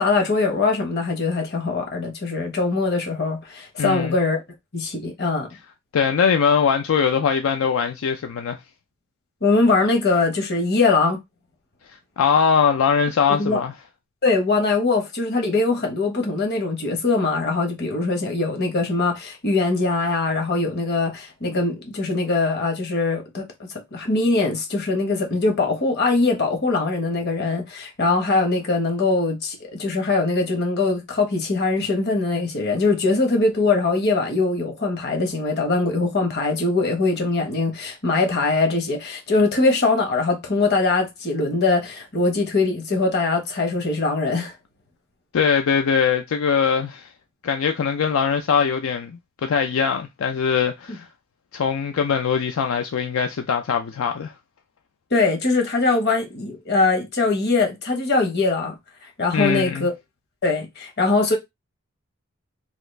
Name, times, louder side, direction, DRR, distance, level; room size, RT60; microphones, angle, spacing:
voice 1, 0.0-4.4 4.7-5.5 9.4-11.2 13.3-13.6 14.2-23.4 23.9-44.5 55.1-58.7 59.2-59.9 60.4-61.4, left 3 dB, 55° left, 1.1 m, -22 dB
voice 2, 3.8-4.2 5.9-8.6 12.2-13.7 45.3-47.1 47.4-51.0 51.5-54.3 59.3-59.9, left 6 dB, 85° left, 0.4 m, -21 dB
3.0 x 2.4 x 3.2 m
head